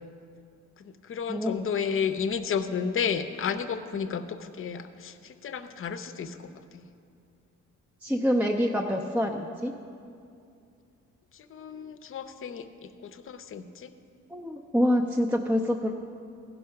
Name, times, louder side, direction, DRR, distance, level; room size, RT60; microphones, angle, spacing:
voice 1, 0.8-6.9 11.3-13.9, left 6 dB, 45° left, 10 dB, 0.7 m, -32 dB
voice 2, 8.0-9.7 14.3-15.9, equal, 5° right, 1 dB, 0.5 m, -26 dB
14.5 x 5.5 x 5.8 m, 2.5 s
cardioid pair, 90°, 30 cm